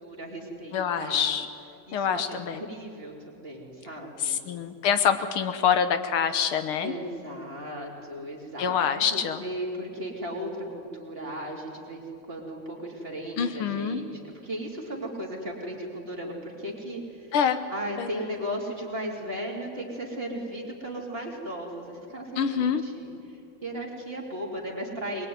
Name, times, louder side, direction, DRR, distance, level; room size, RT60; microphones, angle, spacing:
voice 1, 0.0-1.3 1.9-4.4 6.8-14.1 14.4-17.3 17.7-25.3, equal, 25° right, -1 dB, 3.4 m, -36 dB
voice 2, 0.7-1.5 1.9-2.6 4.2-6.9 8.6-9.4 13.4-14.0 17.3-17.6 18.0-18.1 22.4-22.8, left 7 dB, 75° left, 10 dB, 1.8 m, -25 dB
22.0 x 21.5 x 9.5 m, 2.6 s
omnidirectional pair, 2.4 m